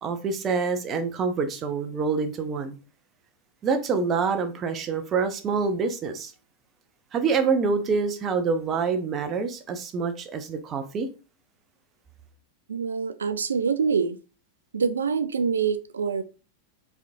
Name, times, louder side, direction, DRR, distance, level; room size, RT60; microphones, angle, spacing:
voice 1, 0.0-2.8 3.6-6.3 7.1-11.1, right 5 dB, 25° right, 0.6 m, -26 dB
voice 2, 12.7-14.2 14.7-16.2, right 6 dB, 70° right, 0.4 m, -25 dB
4.8 x 3.4 x 2.6 m
figure-of-eight pair, 90°, 0 cm